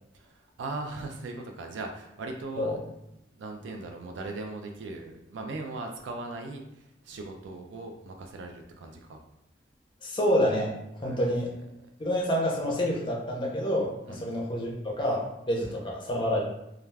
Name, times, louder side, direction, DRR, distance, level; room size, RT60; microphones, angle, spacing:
voice 1, 0.1-2.8 3.3-9.2 11.0-11.9 14.1-14.3 15.6-15.8, right 2 dB, 85° right, 2 dB, 0.4 m, -39 dB
voice 2, 10.0-10.7 11.0-11.5 12.0-16.4, equal, 25° left, -2 dB, 0.5 m, -28 dB
2.3 x 2.2 x 3.2 m, 0.84 s
head